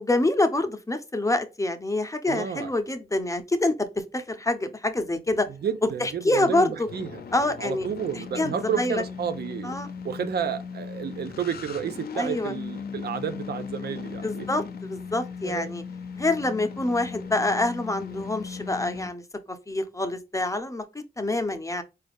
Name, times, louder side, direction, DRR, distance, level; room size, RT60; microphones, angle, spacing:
voice 1, 0.0-5.5 6.0-6.9 7.3-7.9 8.4-9.0 9.6-9.9 12.1-12.5 14.2-15.8 16.2-20.8 21.2-21.8, left 2 dB, 20° left, 0.6 m, -26 dB
voice 2, 2.3-2.7 5.6-7.2 7.6-9.8 10.0-14.5 15.4-15.8, right 7 dB, 85° right, 0.5 m, -31 dB
sound 1, 5.3-19.1, left 6 dB, 75° left, 0.5 m, -38 dB
4.1 x 2.4 x 3.4 m
cardioid pair, 60°, 16 cm